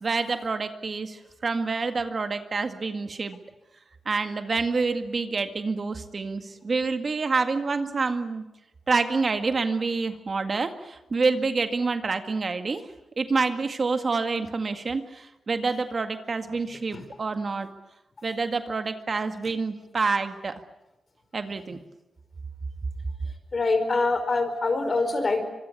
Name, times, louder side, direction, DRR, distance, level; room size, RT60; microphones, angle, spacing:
voice 1, 0.0-3.4 4.1-8.4 8.9-12.8 13.2-17.7 18.2-20.6 21.3-21.8, right 4 dB, 50° right, 7 dB, 1.9 m, -27 dB
voice 2, 23.5-25.4, left 3 dB, 45° left, 8 dB, 4.9 m, -24 dB
24.5 x 22.5 x 8.4 m, 0.98 s
cardioid pair, 70°, 0 cm